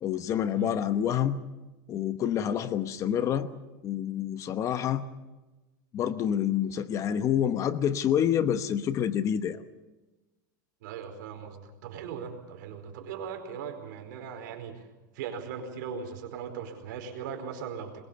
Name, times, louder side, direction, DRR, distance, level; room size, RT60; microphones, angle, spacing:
voice 1, 0.0-1.4 1.9-3.5 3.8-5.0 5.9-9.6, left 9 dB, 30° left, 11 dB, 1.0 m, -27 dB
voice 2, 10.8-14.9 15.1-18.0, right 7 dB, 70° right, 6 dB, 4.7 m, -39 dB
22.5 x 22.0 x 6.9 m, 1.1 s
supercardioid pair, 150°, 11 cm